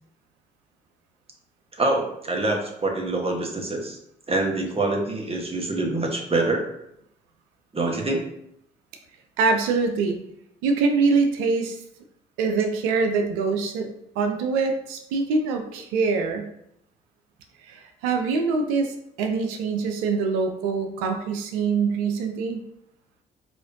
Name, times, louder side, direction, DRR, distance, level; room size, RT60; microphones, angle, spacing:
voice 1, 1.7-4.0 4.3-6.6 7.7-8.2, right 2 dB, 30° right, 1 dB, 1.1 m, -25 dB
voice 2, 9.4-10.2 10.6-11.8 12.4-16.5 17.7-22.6, right 4 dB, 85° right, 5 dB, 0.5 m, -24 dB
4.7 x 2.5 x 2.7 m, 0.75 s
hypercardioid pair, 45°, 21 cm